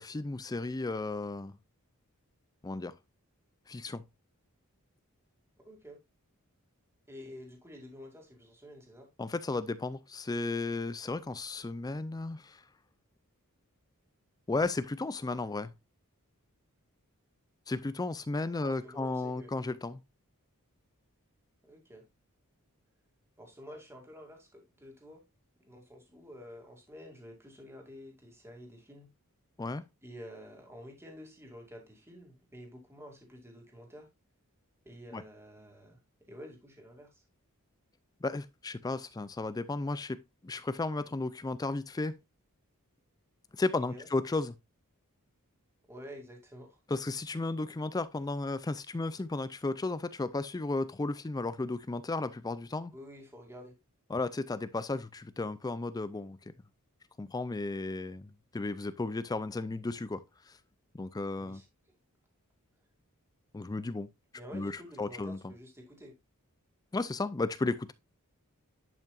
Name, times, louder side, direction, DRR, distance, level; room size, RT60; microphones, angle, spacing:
voice 1, 0.0-1.5 2.6-2.9 3.7-4.0 9.2-12.6 14.5-15.7 17.7-20.0 29.6-29.9 35.1-35.2 38.2-40.2 40.4-42.2 43.6-44.6 46.9-52.9 54.1-56.4 57.2-60.5 60.9-61.6 63.5-64.1 64.5-65.5 66.9-67.9, left 3 dB, 15° left, 0.4 m, -34 dB
voice 2, 5.6-6.0 7.1-9.1 18.6-19.5 21.6-22.0 23.4-25.2 25.6-29.1 30.0-34.1 34.8-36.0 36.3-37.2 43.8-44.1 45.9-46.8 52.9-53.7 61.4-61.7 64.3-66.1, equal, 10° right, 2.4 m, -49 dB
10.5 x 5.5 x 2.4 m
head